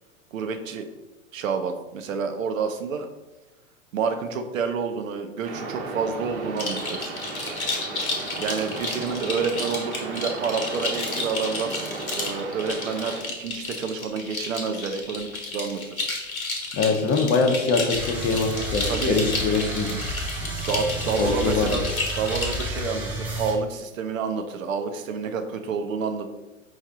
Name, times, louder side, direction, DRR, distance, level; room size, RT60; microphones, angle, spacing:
voice 1, 0.3-0.9 1.3-3.1 3.9-7.2 8.4-11.9 12.1-16.1 18.9-19.2 20.7-21.8 22.2-26.3, right 5 dB, 70° right, 7 dB, 0.7 m, -29 dB
sound 1, 5.4-13.2, right 3 dB, 40° right, 1.0 m, -35 dB
sound 2, 6.6-22.7, left 3 dB, 80° left, 1.2 m, -32 dB
voice 2, 16.7-19.9 21.2-21.8, left 4 dB, 30° left, 4 dB, 0.7 m, -23 dB
sound 3, 17.9-23.5, right 1 dB, 5° right, 0.3 m, -31 dB
4.8 x 2.7 x 3.5 m, 1.1 s
figure-of-eight pair, 95°, 41 cm